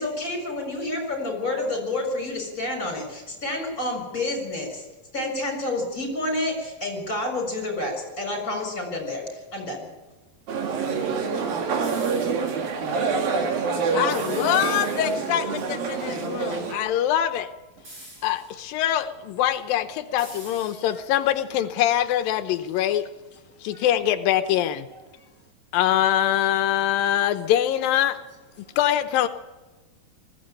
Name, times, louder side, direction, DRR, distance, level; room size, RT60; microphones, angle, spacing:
voice 1, 0.0-4.9 5.1-9.9, left 2 dB, 25° left, 4 dB, 6.7 m, -29 dB
sound 1, 10.5-16.7, right 5 dB, 90° right, 4.0 m, -26 dB
sound 2, 11.8-12.6 14.1-15.5 17.8-18.6 20.2-21.2, right 1 dB, 40° right, 8.4 m, -45 dB
voice 2, 13.9-17.5 18.2-23.1 23.6-24.9 25.7-28.2 28.8-29.3, left 11 dB, 85° left, 9 dB, 2.6 m, -23 dB
voice 3, 19.4-19.8 20.3-21.1 23.3-23.9 24.9-25.5 26.9-27.2 28.5-28.8, right 1 dB, 65° right, 3 dB, 0.7 m, -55 dB
20.5 x 15.0 x 8.9 m, 1.2 s
omnidirectional pair, 4.0 m